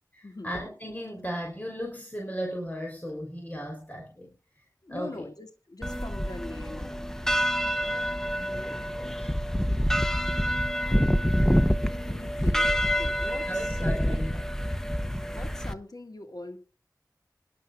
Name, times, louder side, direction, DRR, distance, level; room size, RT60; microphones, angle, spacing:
voice 1, 0.1-4.3 4.9-5.3 8.4-9.3 13.5-14.4, equal, 20° left, 1 dB, 3.9 m, -36 dB
voice 2, 4.8-7.2 7.8-8.0 11.9-14.3 15.3-16.6, left 2 dB, 65° left, 6 dB, 2.1 m, -43 dB
sound 1, 5.8-15.7, equal, 5° left, 0.9 m, -27 dB
24.0 x 11.0 x 2.5 m, 0.34 s
wide cardioid pair, 45°, 7 cm